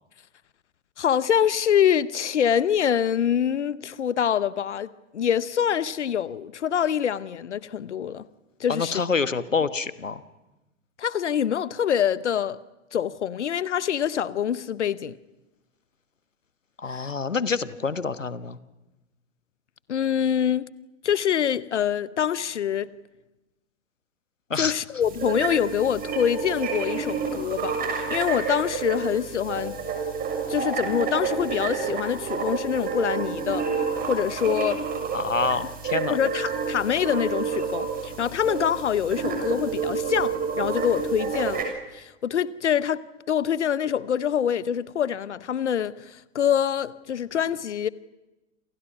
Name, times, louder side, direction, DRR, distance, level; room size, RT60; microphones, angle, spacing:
voice 1, 1.0-8.2 8.6-9.0 11.0-12.6 12.9-15.2 16.9-17.1 19.9-20.7 21.0-22.9 24.6-29.8 30.5-33.7 34.1-34.8 36.1-43.0 43.3-47.9, left 9 dB, 65° left, 0.9 m, -25 dB
voice 2, 8.7-10.2 16.8-18.6 24.5-24.7 35.1-36.2, left 5 dB, 80° left, 1.3 m, -27 dB
sound 1, 25.0-41.6, right 5 dB, 25° right, 7.1 m, -29 dB
28.0 x 28.0 x 6.0 m
figure-of-eight pair, 100°, 37 cm